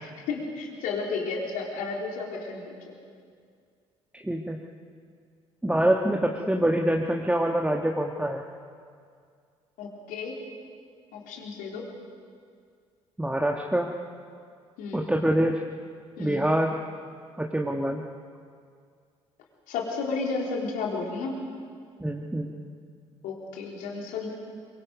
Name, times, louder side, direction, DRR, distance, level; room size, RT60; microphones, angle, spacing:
voice 1, 0.0-3.0 9.8-10.4 11.1-11.9 14.8-15.1 16.2-16.5 19.7-21.4 23.2-24.3, left 4 dB, 65° left, -1 dB, 3.8 m, -33 dB
voice 2, 4.1-4.6 5.6-8.4 13.2-13.9 14.9-15.6 16.2-16.7 17.4-18.0 22.0-22.5, right 1 dB, 10° right, 1 dB, 1.6 m, -25 dB
24.0 x 23.0 x 5.3 m, 2.2 s
hypercardioid pair, 50°, 15 cm